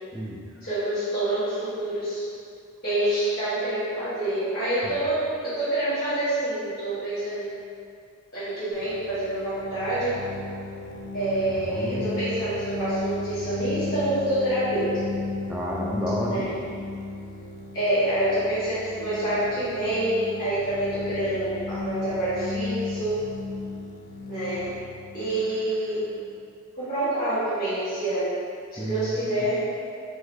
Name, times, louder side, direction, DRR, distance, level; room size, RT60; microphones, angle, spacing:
voice 1, 0.6-2.2 2.8-7.6 8.3-10.2 11.1-15.1 16.3-16.5 17.7-23.2 24.3-24.8 25.1-26.1 26.8-28.4 28.7-29.6, right 1 dB, 45° left, -15 dB, 1.5 m, -27 dB
sound 1, 8.7-26.3, left 3 dB, 85° left, 0.7 m, -35 dB
voice 2, 11.7-12.1 15.5-16.5 28.8-29.3, right 1 dB, 5° right, -3 dB, 0.4 m, -30 dB
4.8 x 3.9 x 2.7 m, 2.3 s
head